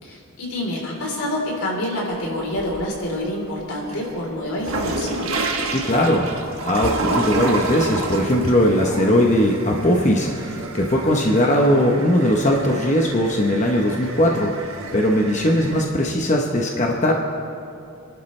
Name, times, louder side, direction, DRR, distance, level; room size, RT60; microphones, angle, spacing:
voice 1, 0.0-5.4 8.7-9.2, left 1 dB, 85° left, -2 dB, 3.8 m, -27 dB
sound 1, 2.1-3.1 3.5-15.8, right 3 dB, 70° right, 1.3 m, -30 dB
voice 2, 5.7-6.3 6.6-14.5 14.9-17.1, equal, 35° left, 0 dB, 1.0 m, -19 dB
29.0 x 11.5 x 3.3 m, 2.6 s
head